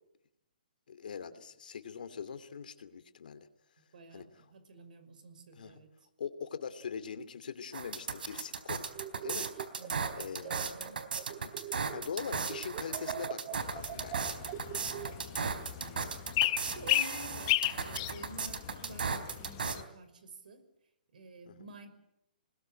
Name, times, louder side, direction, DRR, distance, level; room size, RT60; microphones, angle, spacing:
voice 1, 0.9-3.4 4.1-4.3 5.6-5.8 6.2-8.9 9.2-9.5 10.1-10.7 11.4-14.4 21.5-21.6, left 6 dB, 65° left, 10 dB, 2.8 m, -42 dB
voice 2, 3.9-5.9 9.8-11.0 15.3-20.6 21.1-21.9, right 2 dB, 65° right, 12 dB, 5.8 m, -51 dB
sound 1, 7.7-19.8, right 5 dB, 80° right, 4.0 m, -36 dB
sound 2, 8.9-12.2 12.5-15.5, right 13 dB, 30° right, 1.6 m, -44 dB
sound 3, 13.5-19.8, left 17 dB, 30° left, 1.0 m, -35 dB
27.5 x 21.0 x 9.2 m, 0.85 s
hypercardioid pair, 165°, 5 cm